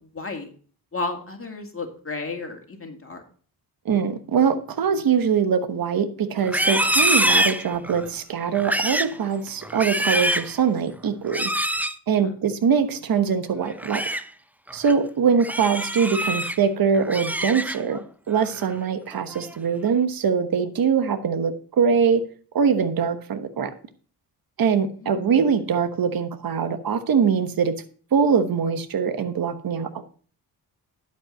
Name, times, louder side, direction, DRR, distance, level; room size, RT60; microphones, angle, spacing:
voice 1, 0.0-0.5 0.9-3.2 12.2-12.3 25.0-25.2, left 3 dB, 30° left, 4 dB, 2.4 m, -33 dB
voice 2, 3.8-11.5 12.1-14.0 14.7-18.0 18.3-22.2 22.5-23.7 24.6-27.7 28.1-30.0, right 6 dB, 50° right, 9 dB, 1.2 m, -22 dB
Livestock farm animals working animals, 6.4-8.1 8.5-9.2 9.6-10.5 11.3-12.0 13.6-14.2 14.7-14.9 15.4-16.6 16.9-18.0 18.4-18.7 19.1-19.6, equal, 5° right, 0.7 m, -25 dB
11.5 x 5.5 x 5.4 m, 0.42 s
supercardioid pair, 55°, 44 cm